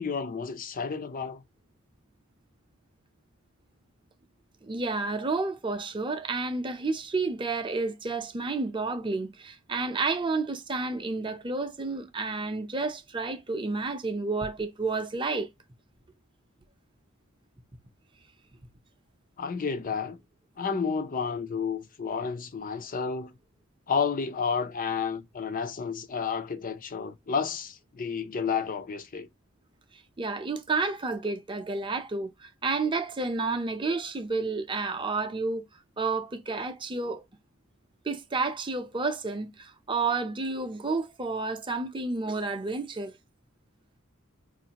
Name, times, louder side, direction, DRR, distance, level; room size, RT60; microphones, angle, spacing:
voice 1, 0.0-1.4 19.4-20.2 20.6-23.3 23.9-29.3, left 6 dB, 40° left, 0.5 m, -31 dB
voice 2, 4.6-15.5 30.2-35.6 36.0-37.2 38.0-43.1, right 3 dB, 25° right, 0.6 m, -30 dB
4.6 x 2.5 x 2.9 m
head